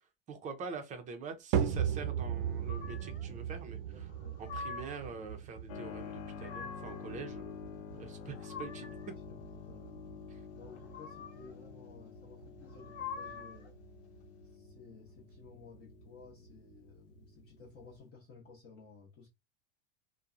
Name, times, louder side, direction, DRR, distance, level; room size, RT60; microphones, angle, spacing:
voice 1, 0.3-4.1 4.4-7.6 7.9-9.0, right 5 dB, 25° right, 0.6 m, -45 dB
sound 1, 1.5-18.0, right 8 dB, 65° right, 0.6 m, -40 dB
sound 2, 2.7-3.3 4.1-5.1 6.1-7.1 8.0-9.1 10.7-11.5 12.6-13.7, left 5 dB, 80° left, 0.9 m, -45 dB
voice 2, 3.9-4.4 9.3-10.1 10.5-13.8 14.4-19.3, left 4 dB, 35° left, 0.8 m, -56 dB
Keyboard (musical), 5.7-18.1, left 8 dB, 60° left, 0.5 m, -49 dB
2.7 x 2.2 x 2.4 m
supercardioid pair, 135°, 33 cm